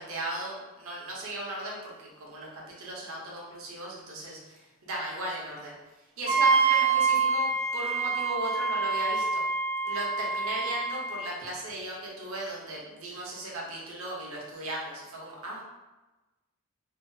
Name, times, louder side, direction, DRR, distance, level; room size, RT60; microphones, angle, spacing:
voice 1, 0.0-5.7 6.2-7.5 7.7-9.4 9.8-15.6, right 1 dB, 65° right, -3 dB, 0.7 m, -37 dB
Wind instrument woodwind instrument, 6.3-11.2, right 4 dB, 30° right, 0.3 m, -26 dB
2.7 x 2.3 x 2.6 m, 1.1 s
head